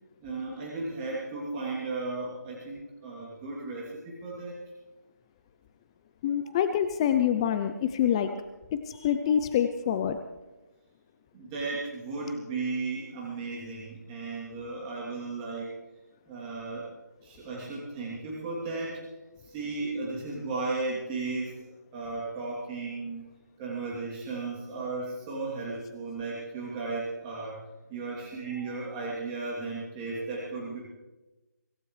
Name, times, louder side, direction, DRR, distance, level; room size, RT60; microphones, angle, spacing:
voice 1, 0.2-4.5 11.3-15.7 16.3-16.9 17.2-19.0 19.4-23.3 23.6-27.6 27.9-30.9, right 3 dB, 20° right, -6 dB, 3.0 m, -35 dB
voice 2, 6.2-8.3 8.7-10.2, left 9 dB, 20° left, 8 dB, 0.5 m, -26 dB
24.5 x 15.5 x 3.3 m, 1.1 s
figure-of-eight pair, 160°, 10 cm